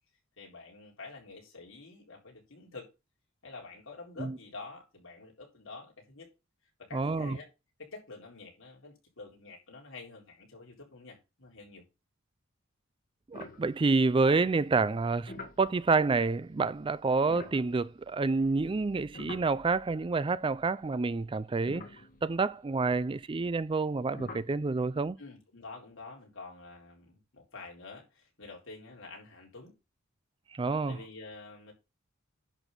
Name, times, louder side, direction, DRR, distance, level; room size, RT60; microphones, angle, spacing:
voice 1, 0.4-2.9 3.4-6.3 6.8-7.5 7.8-11.8 25.2-29.7 30.9-31.7, left 3 dB, 70° left, 4.0 m, -48 dB
voice 2, 6.9-7.4 13.3-21.8 22.2-25.2 30.5-31.0, right 3 dB, 25° right, 0.4 m, -28 dB
sound 1, 13.3-14.3 15.0-20.2 20.5-20.6 21.2-21.3 21.7-22.7 24.1-24.6, left 2 dB, 45° left, 2.2 m, -48 dB
11.0 x 4.1 x 6.7 m
head